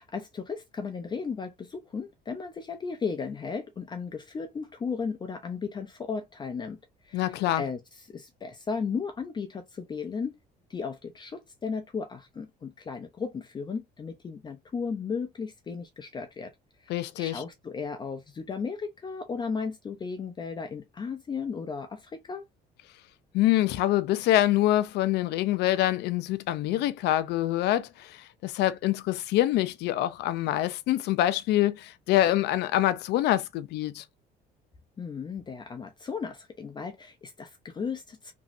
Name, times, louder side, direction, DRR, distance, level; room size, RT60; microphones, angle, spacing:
voice 1, 0.0-6.8 7.0-10.4 10.7-16.5 16.8-22.4 35.0-38.3, left 5 dB, 25° left, 0.5 m, -35 dB
voice 2, 7.1-7.6 16.9-17.4 23.3-34.0, left 14 dB, 80° left, 0.5 m, -25 dB
3.0 x 2.7 x 2.5 m
cardioid pair, 110°, 17 cm